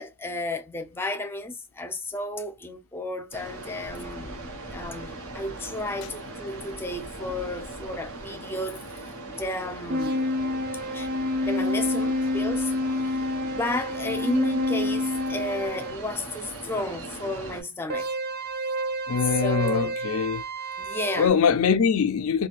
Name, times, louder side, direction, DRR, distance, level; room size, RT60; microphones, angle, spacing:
voice 1, 0.0-4.5 4.7-10.3 10.9-11.1 11.4-18.1 19.3-19.9 20.8-21.3, left 2 dB, 10° left, 0.5 m, -33 dB
sound 1, 3.3-17.6, right 2 dB, 75° right, 1.3 m, -39 dB
sound 2, 9.9-16.0 17.9-21.3, left 1 dB, 45° right, 0.6 m, -28 dB
voice 2, 19.1-20.4 21.2-22.5, left 6 dB, 70° left, 0.4 m, -23 dB
3.9 x 2.3 x 2.4 m
head